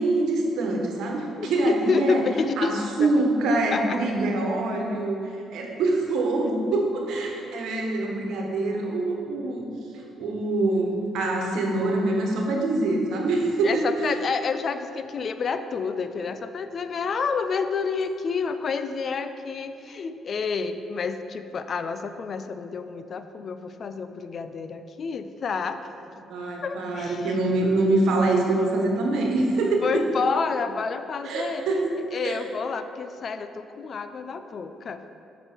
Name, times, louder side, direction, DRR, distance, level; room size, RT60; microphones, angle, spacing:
voice 1, 0.0-2.2 2.6-9.6 9.9-13.9 26.3-30.1 31.2-31.9 32.2-32.4, right 2 dB, 80° right, 1 dB, 1.4 m, -25 dB
voice 2, 1.4-2.7 3.0-3.1 3.7-4.0 13.6-25.8 26.6-27.3 29.8-31.6 32.1-35.0, left 5 dB, 50° left, 10 dB, 0.5 m, -29 dB
8.9 x 6.1 x 4.6 m, 2.7 s
cardioid pair, 75°, 0 cm